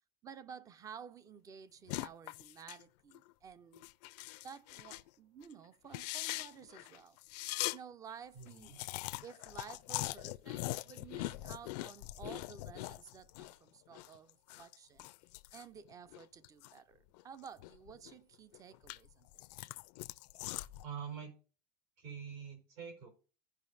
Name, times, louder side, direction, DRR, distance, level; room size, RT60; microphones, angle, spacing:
voice 1, 0.2-3.9 4.4-7.2 7.7-8.7 9.2-15.1 15.5-19.4, right 7 dB, 15° right, 0.4 m, -53 dB
sound 1, 1.9-2.8 3.1-3.3 3.7-5.1 5.4-5.5 5.8-7.8 8.1-8.2 8.4-13.6 13.9-16.8 17.1-18.1 18.5-20.9, left 19 dB, 80° left, 0.4 m, -42 dB
voice 2, 8.3-8.8 20.8-21.3 22.0-23.1, right 7 dB, 65° right, 4.1 m, -45 dB
15.5 x 5.6 x 2.6 m
cardioid pair, 170°, 20 cm